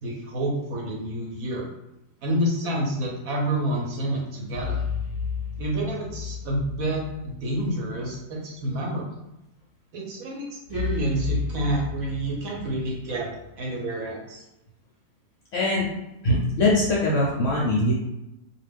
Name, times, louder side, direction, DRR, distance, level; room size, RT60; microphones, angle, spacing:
voice 1, 0.0-1.7 2.2-4.8 5.6-9.1 9.9-13.3 13.6-14.4, right 1 dB, 70° right, -2 dB, 0.9 m, -28 dB
sound 1, 4.5-7.8 8.1-8.2 10.7-13.6, left 6 dB, 85° left, 1.2 m, -33 dB
voice 2, 15.5-15.9 16.2-17.9, left 1 dB, 65° left, -4 dB, 0.8 m, -22 dB
2.5 x 2.2 x 3.3 m, 0.90 s
omnidirectional pair, 1.8 m